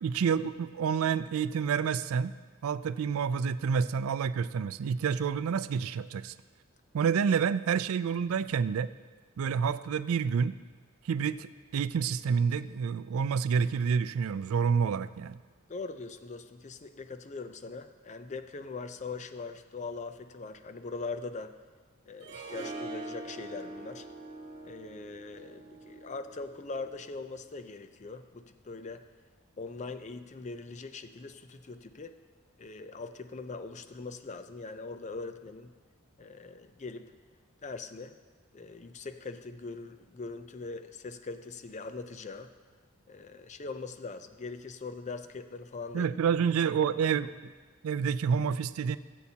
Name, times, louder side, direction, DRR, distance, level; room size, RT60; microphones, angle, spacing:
voice 1, 0.0-2.3 2.6-6.3 6.9-8.9 9.4-10.5 11.0-15.4 45.9-47.5 47.8-49.0, right 6 dB, 80° right, 15 dB, 0.4 m, -28 dB
voice 2, 15.7-21.6 22.1-24.1 24.6-29.0 29.6-32.2 32.6-35.7 36.2-37.1 37.6-38.1 38.5-42.5 43.1-46.1, left 3 dB, 35° left, 10 dB, 0.5 m, -41 dB
Harp, 22.2-27.3, right 2 dB, 50° right, 1.7 m, -44 dB
17.5 x 8.2 x 2.8 m, 1.4 s
head